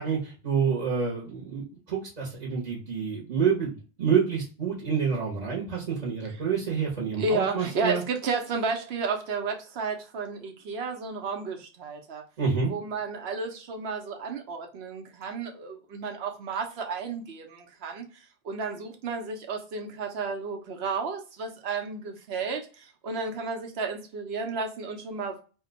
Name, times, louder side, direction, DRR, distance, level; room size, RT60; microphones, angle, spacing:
voice 1, 0.0-8.0 12.4-12.7, right 6 dB, 40° right, 0.9 m, -28 dB
voice 2, 7.2-12.2 12.7-25.4, right 4 dB, 85° right, 1.0 m, -32 dB
2.8 x 2.2 x 3.7 m
omnidirectional pair, 1.0 m